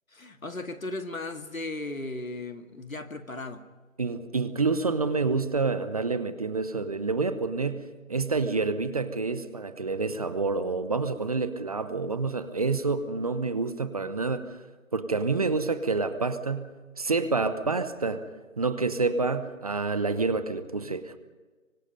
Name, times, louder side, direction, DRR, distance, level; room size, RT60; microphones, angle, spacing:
voice 1, 0.1-3.6, left 2 dB, 85° left, 7 dB, 2.2 m, -36 dB
voice 2, 4.0-14.6 14.9-16.7 17.0-18.3 18.6-21.2, right 4 dB, 30° right, 12 dB, 0.9 m, -28 dB
26.0 x 24.5 x 5.3 m, 1.3 s
figure-of-eight pair, 155°, 40 cm